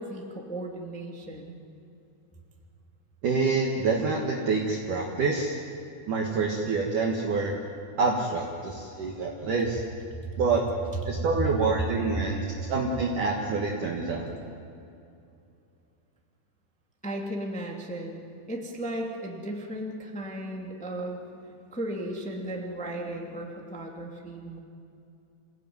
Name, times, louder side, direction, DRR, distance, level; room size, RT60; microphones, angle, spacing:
voice 1, 0.0-1.6 10.2-10.4 11.0-11.1 17.0-18.2 18.5-24.6, right 1 dB, 5° left, 0 dB, 1.0 m, -36 dB
voice 2, 3.2-5.6 6.1-7.6 8.0-9.8 10.4-10.6 11.1-12.4 12.7-14.3, right 4 dB, 55° right, -1 dB, 2.8 m, -27 dB
28.0 x 17.5 x 9.5 m, 2.6 s
omnidirectional pair, 5.2 m